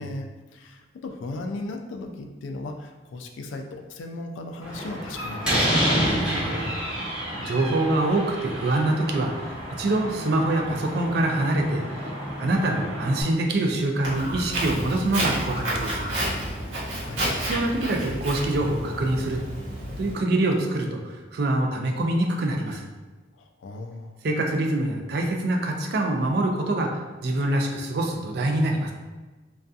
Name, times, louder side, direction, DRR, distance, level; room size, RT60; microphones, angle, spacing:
voice 1, 0.0-5.7 16.9-17.2 23.3-24.2, left 2 dB, 75° left, 4 dB, 0.3 m, -36 dB
Slam, 4.6-13.2, equal, 5° right, 0.9 m, -29 dB
voice 2, 5.9-7.1 7.4-16.1 17.4-19.4 20.0-22.9 24.2-28.9, right 2 dB, 55° right, 2 dB, 0.3 m, -25 dB
Walk footsteps, 14.0-20.1, right 1 dB, 85° right, 1.0 m, -30 dB
2.6 x 2.3 x 2.3 m, 1.3 s
head